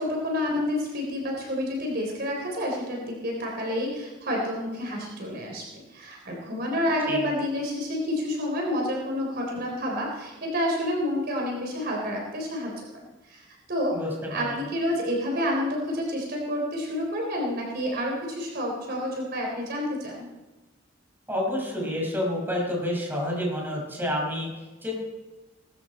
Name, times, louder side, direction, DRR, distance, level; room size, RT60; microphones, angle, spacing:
voice 1, 0.0-14.0 14.3-20.3, left 1 dB, 55° right, -1 dB, 3.8 m, -29 dB
voice 2, 13.9-14.6 21.3-24.5 24.8-24.9, left 1 dB, 10° right, -2 dB, 5.6 m, -29 dB
21.5 x 13.5 x 4.4 m, 1.1 s
head